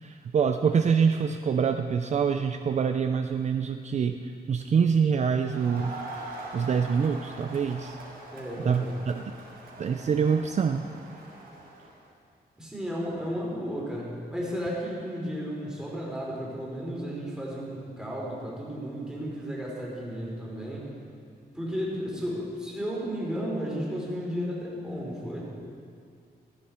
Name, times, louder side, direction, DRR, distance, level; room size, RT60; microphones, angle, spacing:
voice 1, 0.0-4.2 4.5-5.9 6.5-8.0 8.6-9.3 9.8-10.8, right 6 dB, 45° right, 6 dB, 0.5 m, -25 dB
Crowd, 5.4-12.0, right 2 dB, 75° right, 4.2 m, -43 dB
voice 2, 8.3-9.0 12.6-20.9 21.5-25.5, equal, 5° right, -5 dB, 3.3 m, -33 dB
15.0 x 14.0 x 4.4 m, 2.3 s
wide cardioid pair, 155°, 16 cm